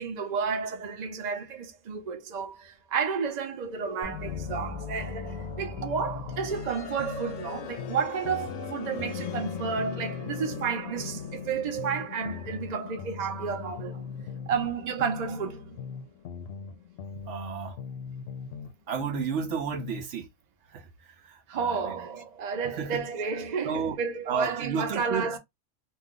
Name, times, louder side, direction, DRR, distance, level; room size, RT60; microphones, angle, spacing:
voice 1, 0.0-14.0 14.5-15.8 21.5-25.4, right 6 dB, 45° right, 0.7 m, -31 dB
sound 1, 4.0-7.8, left 5 dB, 35° left, 0.6 m, -40 dB
sound 2, 4.2-6.7 7.0-10.7 11.0-14.7 15.0-18.7 19.0-20.1, left 5 dB, 65° left, 0.8 m, -40 dB
sound 3, 6.3-18.2, left 9 dB, 90° left, 0.9 m, -42 dB
voice 2, 17.3-17.8 18.9-20.3 20.7-20.9 21.2-22.0 22.6-23.1 23.6-24.0 24.3-25.3, right 6 dB, 75° right, 0.9 m, -32 dB
2.6 x 2.2 x 3.7 m
omnidirectional pair, 1.3 m